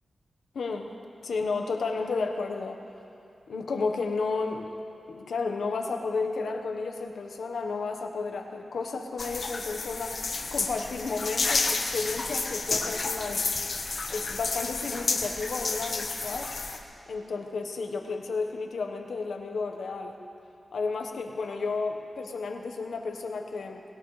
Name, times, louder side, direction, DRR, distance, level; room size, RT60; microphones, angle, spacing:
voice 1, 0.5-0.9 1.2-2.8 3.5-4.7 5.1-10.2 10.5-13.5 14.1-16.5 17.1-20.2 20.7-23.8, left 4 dB, 90° left, 4 dB, 1.2 m, -32 dB
sound 1, 9.2-16.8, left 3 dB, 60° left, 1.2 m, -31 dB
20.0 x 18.0 x 3.3 m, 2.6 s
wide cardioid pair, 95°, 0 cm